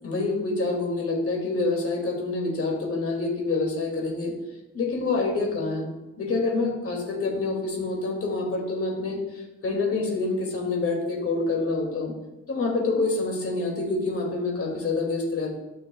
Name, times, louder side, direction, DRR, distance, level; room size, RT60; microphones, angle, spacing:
voice 1, 0.0-4.3 4.7-5.9 6.2-12.1 12.5-15.5, left 3 dB, 50° left, 0 dB, 2.4 m, -27 dB
12.0 x 6.3 x 2.3 m, 1.1 s
cardioid pair, 90°, 30 cm